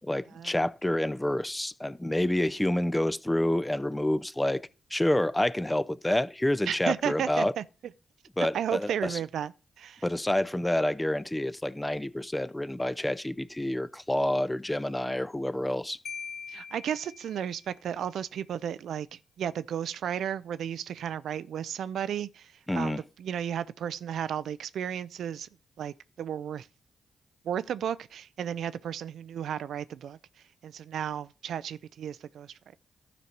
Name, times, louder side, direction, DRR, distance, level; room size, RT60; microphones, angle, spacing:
voice 1, 0.0-7.5 8.4-9.2 10.0-16.0 22.7-23.0, left 1 dB, 15° left, 0.6 m, -28 dB
voice 2, 6.7-7.6 8.5-9.5 9.8-10.0 16.5-25.5 25.8-26.7 27.4-30.2 30.6-32.8, right 9 dB, 80° right, 0.4 m, -34 dB
Marimba xylophone, 16.1-17.8, left 6 dB, 70° left, 0.5 m, -42 dB
12.0 x 5.2 x 4.5 m
supercardioid pair, 50°, 0 cm